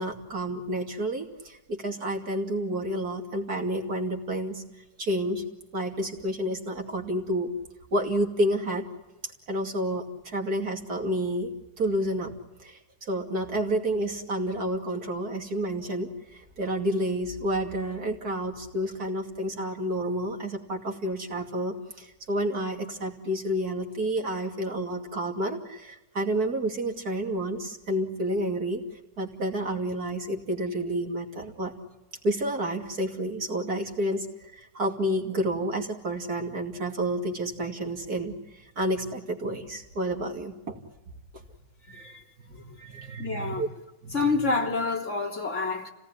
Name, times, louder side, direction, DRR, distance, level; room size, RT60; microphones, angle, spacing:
voice 1, 0.0-4.6 5.0-5.4 5.7-7.5 7.9-8.9 9.5-11.5 11.8-12.3 12.6-28.8 29.2-31.7 32.2-40.8 42.5-42.6 42.8-43.7 44.0-44.2, right 1 dB, 60° right, 3.1 m, -30 dB
voice 2, 41.9-42.2 42.5-43.7 44.1-45.9, left 3 dB, 40° left, 3.7 m, -29 dB
30.0 x 18.5 x 10.0 m
omnidirectional pair, 1.9 m